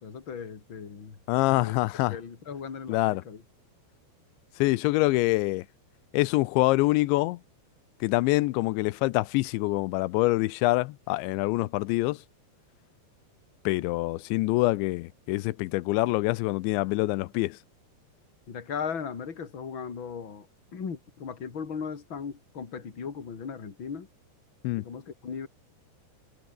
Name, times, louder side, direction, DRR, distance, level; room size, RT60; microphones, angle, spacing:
voice 1, 0.0-1.2 1.5-1.8 2.1-3.4 18.5-24.1 24.7-25.5, left 6 dB, 30° left, 3.3 m, -37 dB
voice 2, 1.3-2.2 2.9-3.2 4.6-5.7 6.1-7.4 8.0-12.2 13.7-17.6 24.6-24.8, left 20 dB, 90° left, 3.1 m, -25 dB
omnidirectional pair, 5.2 m